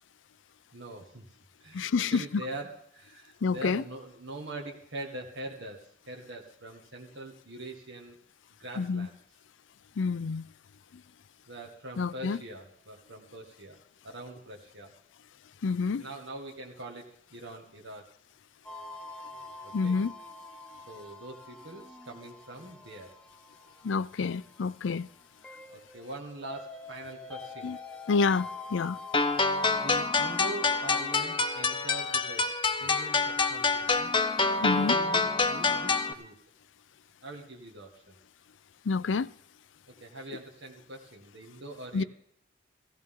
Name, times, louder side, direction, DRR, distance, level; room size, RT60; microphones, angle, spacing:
voice 1, 0.7-1.2 1.6-8.2 8.6-9.1 11.5-13.8 14.0-14.9 16.0-18.0 19.6-19.9 20.9-23.1 25.7-27.7 29.8-32.5 32.8-34.1 34.6-36.4 37.2-38.1 40.0-42.0, right 2 dB, 75° right, 1.7 m, -43 dB
voice 2, 1.7-2.2 3.4-3.8 8.8-9.1 10.0-10.4 12.0-12.4 15.6-16.0 19.7-20.1 23.8-25.1 27.6-27.8 28.1-29.0 34.6-35.0 38.9-39.3 41.9-42.0, left 4 dB, 90° left, 0.5 m, -28 dB
sound 1, 18.6-31.1, left 3 dB, 5° left, 1.1 m, -46 dB
sound 2, 29.1-36.1, left 4 dB, 25° left, 0.7 m, -27 dB
16.5 x 15.0 x 3.8 m
head